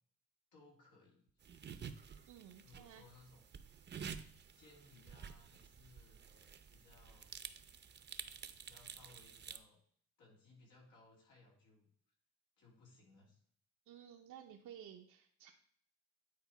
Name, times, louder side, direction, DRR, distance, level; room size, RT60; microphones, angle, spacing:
voice 1, 0.5-1.3 2.6-3.5 4.5-7.4 8.6-9.8 10.2-11.9 12.6-13.4, left 3 dB, 85° left, -2 dB, 2.8 m, -64 dB
sound 1, 1.4-9.6, right 7 dB, 35° right, 0.6 m, -51 dB
voice 2, 2.3-3.0 13.9-15.5, right 9 dB, 75° right, 2 dB, 0.8 m, -55 dB
9.6 x 4.3 x 4.1 m, 0.62 s
cardioid pair, 90°, 30 cm